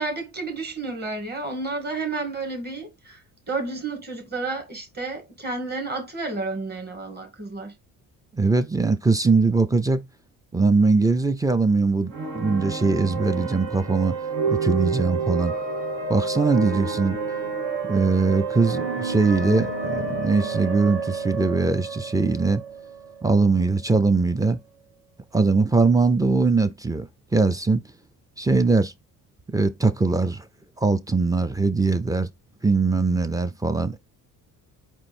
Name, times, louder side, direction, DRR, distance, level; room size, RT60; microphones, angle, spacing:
voice 1, 0.0-7.7, right 3 dB, 25° right, 2.3 m, -31 dB
voice 2, 8.3-10.0 10.5-14.2 14.5-15.5 16.1-17.2 17.9-22.6 23.2-24.6 25.3-27.8 28.4-28.9 29.5-30.5 30.8-32.3 32.6-34.0, right 3 dB, 10° right, 0.4 m, -21 dB
sound 1, 12.1-23.8, right 4 dB, 70° right, 2.0 m, -29 dB
4.5 x 2.6 x 4.2 m
cardioid pair, 110°, 37 cm